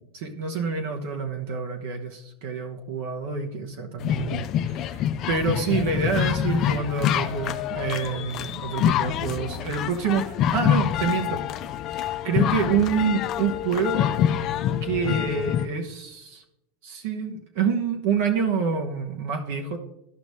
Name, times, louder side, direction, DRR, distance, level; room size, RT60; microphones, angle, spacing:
voice 1, 0.1-11.4 12.2-14.1 14.8-16.4 16.8-19.8, right 5 dB, 65° right, 2 dB, 1.1 m, -27 dB
sound 1, 4.0-15.7, left 10 dB, 45° left, 0.5 m, -26 dB
13.0 x 5.2 x 3.2 m, 0.86 s
hypercardioid pair, 110°, 0 cm